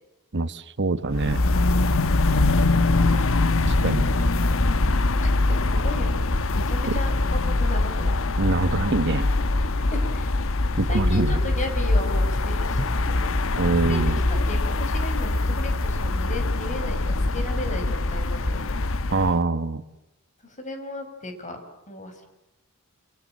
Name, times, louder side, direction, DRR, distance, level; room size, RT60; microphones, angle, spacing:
voice 1, 0.3-1.4 3.6-4.1 6.9-7.0 8.4-9.3 10.8-11.4 13.6-14.2 19.1-19.8, right 3 dB, 55° right, 12 dB, 1.2 m, -24 dB
sound 1, 1.1-19.4, left 2 dB, 65° left, 1.1 m, -23 dB
voice 2, 5.2-6.2 6.5-8.2 9.9-10.3 10.9-13.3 13.9-14.0 14.3-18.7 20.4-21.6 21.9-22.2, left 1 dB, 35° left, 6 dB, 5.4 m, -35 dB
27.5 x 27.5 x 7.6 m, 0.90 s
head